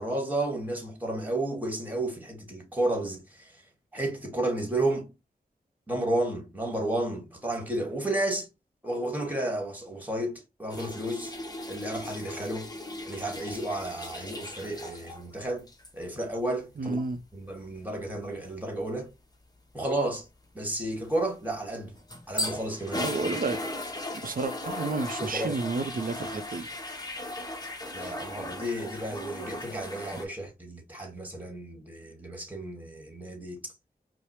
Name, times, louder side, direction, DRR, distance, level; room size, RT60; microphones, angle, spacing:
voice 1, 0.0-3.5 3.9-5.1 5.9-8.5 8.8-11.3 11.7-12.7 13.0-15.6 15.9-16.9 17.3-19.1 19.7-20.2 20.5-21.9 22.3-23.1 25.2-25.6 27.9-33.7, right 1 dB, 10° right, 1.4 m, -32 dB
sound 1, 10.7-15.3 15.6-15.9 21.7-30.2, left 1 dB, 25° left, 0.9 m, -37 dB
voice 2, 16.8-17.2 22.9-23.6 24.2-26.7, right 3 dB, 60° right, 0.5 m, -31 dB
4.8 x 2.0 x 2.9 m
wide cardioid pair, 70°, 16 cm